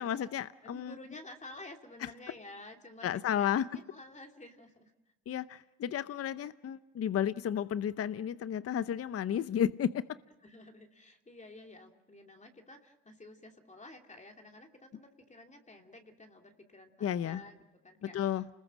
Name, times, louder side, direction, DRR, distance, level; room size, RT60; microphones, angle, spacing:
voice 1, 0.0-0.9 2.0-2.1 3.0-3.7 5.3-10.0 17.0-17.4 18.1-18.4, left 9 dB, 40° left, 14 dB, 0.7 m, -32 dB
voice 2, 0.6-4.9 10.4-18.4, left 2 dB, 20° left, 3 dB, 2.7 m, -51 dB
29.0 x 20.5 x 6.3 m, 1.1 s
supercardioid pair, 85°, 38 cm